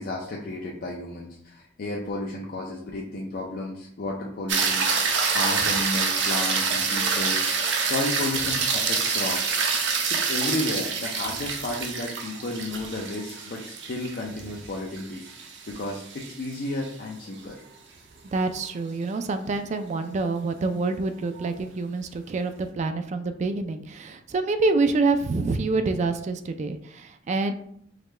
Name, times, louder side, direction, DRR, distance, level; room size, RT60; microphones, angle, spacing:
voice 1, 0.0-4.9 5.3-7.4 7.8-9.6 10.1-17.6, left 2 dB, 50° left, -1 dB, 0.5 m, -32 dB
sound 1, 4.5-16.9 21.4-21.5, right 5 dB, 65° right, 0.7 m, -26 dB
voice 2, 18.3-27.5, right 3 dB, 40° right, 9 dB, 0.3 m, -26 dB
4.9 x 2.2 x 3.2 m, 0.69 s
head